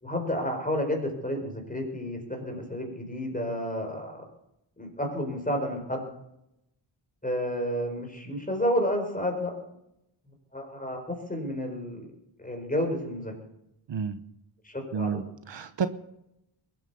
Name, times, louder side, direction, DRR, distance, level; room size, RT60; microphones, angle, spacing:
voice 1, 0.0-4.2 4.8-6.1 7.2-9.5 10.5-12.1 12.4-13.3 14.6-15.2, equal, 15° left, 3 dB, 4.7 m, -31 dB
voice 2, 13.9-14.2 14.9-15.9, right 6 dB, 65° right, 11 dB, 1.0 m, -30 dB
21.5 x 9.1 x 7.0 m, 0.82 s
wide cardioid pair, 110°, 46 cm